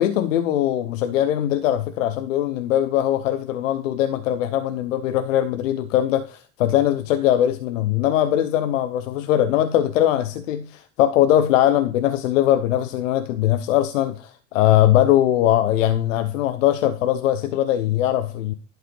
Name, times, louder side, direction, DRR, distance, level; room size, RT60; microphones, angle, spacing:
voice 1, 0.0-18.5, left 12 dB, 85° left, 0.7 m, -21 dB
11.5 x 4.7 x 3.3 m
hypercardioid pair, 70°, 37 cm